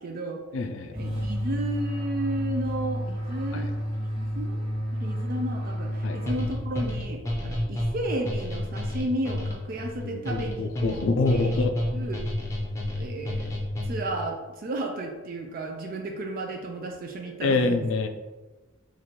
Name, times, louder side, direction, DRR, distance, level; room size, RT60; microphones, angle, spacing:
voice 1, 0.0-0.4 0.9-3.7 4.0-4.6 4.9-11.0 11.3-11.7 11.9-12.2 13.0-13.6 13.8-17.8, right 1 dB, 45° right, 2 dB, 0.4 m, -33 dB
voice 2, 0.5-0.9 3.5-3.7 6.0-6.2 10.0-11.7 17.4-18.1, left 3 dB, 70° left, 7 dB, 0.4 m, -26 dB
sound 1, 0.9-7.0, equal, 25° right, 1.0 m, -31 dB
sound 2, 6.3-14.2, left 1 dB, 15° left, 0.6 m, -30 dB
3.0 x 2.5 x 4.1 m, 1.2 s
head